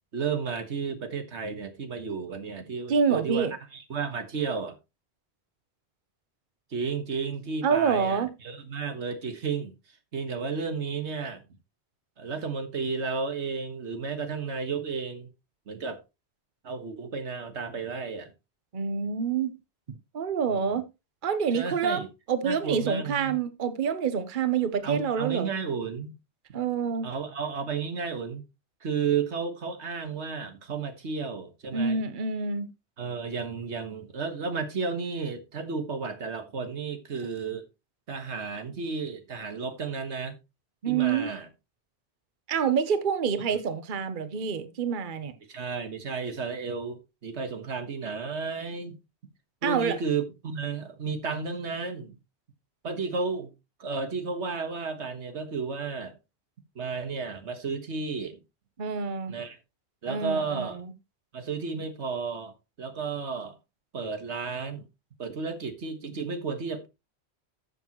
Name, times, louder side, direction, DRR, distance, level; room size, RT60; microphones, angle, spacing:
voice 1, 0.1-4.8 6.7-9.7 10.1-11.4 12.2-15.3 15.7-16.0 16.6-18.3 20.5-20.8 21.5-22.1 22.4-23.4 24.8-26.1 27.0-28.4 28.8-32.0 33.0-37.7 38.1-40.4 40.9-41.5 45.5-49.0 49.6-52.2 52.8-53.5 53.8-56.2 56.8-58.4 59.3-59.6 60.0-60.8 61.3-62.5 62.8-63.6 63.9-64.8 65.2-66.9, right 5 dB, 90° right, 1.7 m, -32 dB
voice 2, 2.9-3.5 7.6-8.3 18.7-19.5 19.9-20.8 21.2-25.6 26.5-27.1 31.7-32.7 40.8-41.3 42.5-45.3 49.6-50.0 58.8-59.4 60.1-60.7, right 6 dB, 50° right, 1.0 m, -27 dB
13.5 x 7.1 x 3.0 m
omnidirectional pair, 1.1 m